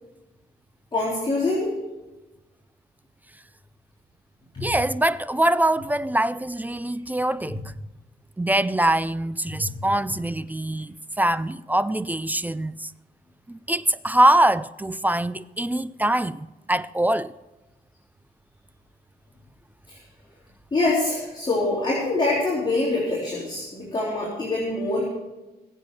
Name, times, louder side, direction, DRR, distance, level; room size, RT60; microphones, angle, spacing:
voice 1, 0.9-1.7 4.5-4.7 7.5-7.6 9.5-9.8 19.9-20.0 20.7-25.1, left 2 dB, 30° left, 3.7 m, -25 dB
voice 2, 4.6-7.6 8.4-12.9 13.5-17.3, right 1 dB, 10° right, 0.4 m, -23 dB
21.5 x 7.9 x 4.8 m
wide cardioid pair, 155°, 17 cm